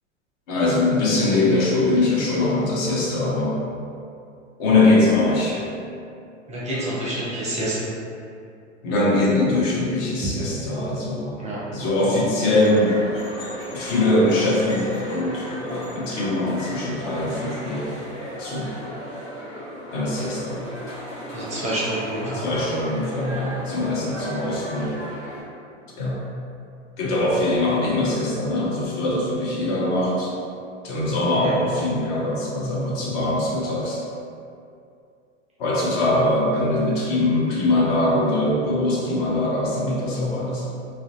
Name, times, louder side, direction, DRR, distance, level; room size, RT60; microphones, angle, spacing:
voice 1, 0.5-3.6 4.6-5.6 6.6-6.9 8.8-11.4 11.7-13.1 13.7-17.9 18.4-18.7 19.9-20.6 22.2-25.0 26.0-26.2 27.0-30.3 30.8-34.0 35.6-40.7, left 2 dB, 50° left, -5 dB, 0.8 m, -22 dB
voice 2, 6.5-7.9 11.4-11.6 21.3-22.5 31.3-31.5, right 1 dB, 20° right, -7 dB, 0.6 m, -28 dB
sound 1, 12.4-25.4, equal, 85° left, 1.2 m, -35 dB
2.4 x 2.2 x 2.6 m, 2.5 s
hypercardioid pair, 95°, 37 cm